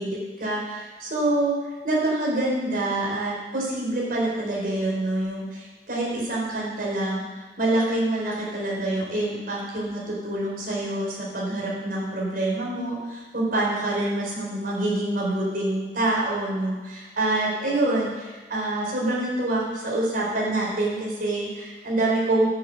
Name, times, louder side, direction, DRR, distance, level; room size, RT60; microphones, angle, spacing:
voice 1, 0.0-1.5 1.8-22.5, right 2 dB, 55° right, -4 dB, 4.4 m, -26 dB
9.7 x 7.6 x 8.0 m, 1.3 s
head